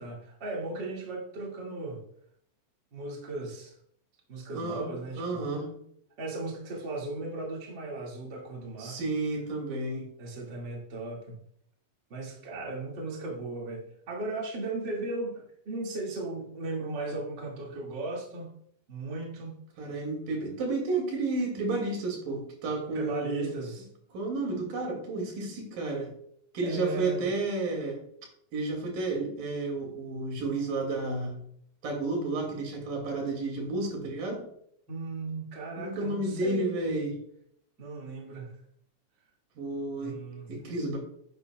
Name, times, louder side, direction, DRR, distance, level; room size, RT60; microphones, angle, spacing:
voice 1, 0.0-2.0 2.9-3.7 4.3-5.4 6.2-9.0 10.2-11.4 12.1-18.5 18.9-19.6 22.9-23.9 26.6-27.3 34.9-36.7 37.8-38.5 40.0-40.5, right 2 dB, 35° right, -2 dB, 2.6 m, -36 dB
voice 2, 4.5-4.9 5.2-5.7 8.8-10.1 19.8-23.5 24.1-26.1 26.5-28.0 28.5-31.4 31.8-34.4 35.8-37.2 39.6-40.2 40.5-41.0, right 2 dB, 90° right, 1 dB, 4.3 m, -31 dB
12.0 x 9.7 x 2.4 m, 0.68 s
omnidirectional pair, 3.8 m